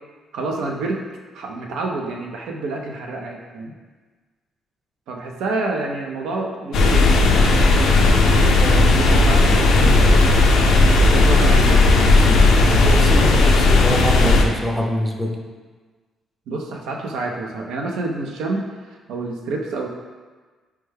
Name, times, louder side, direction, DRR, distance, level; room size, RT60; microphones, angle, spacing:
voice 1, 0.3-1.0 1.3-3.7 5.1-7.1 8.0-10.3 11.1-13.4 16.5-19.9, right 3 dB, 85° right, 1 dB, 0.4 m, -28 dB
sound 1, 6.7-14.4, left 2 dB, 80° left, 0.4 m, -14 dB
voice 2, 12.8-15.4, equal, ahead, 0 dB, 0.5 m, -25 dB
4.4 x 2.2 x 3.2 m, 1.4 s
cardioid pair, 90°, 0 cm